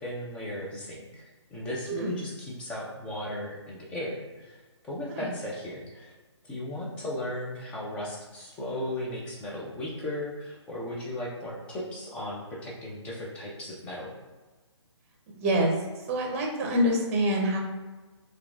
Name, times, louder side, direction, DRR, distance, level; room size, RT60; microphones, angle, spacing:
voice 1, 0.0-4.6 4.8-6.1 6.5-14.1, left 1 dB, 5° left, -4 dB, 0.4 m, -36 dB
voice 2, 1.9-2.2 5.1-5.3 15.4-15.7 16.1-17.6, equal, 30° right, 0 dB, 0.7 m, -26 dB
5.6 x 2.3 x 2.5 m, 1.2 s
figure-of-eight pair, 145°, 15 cm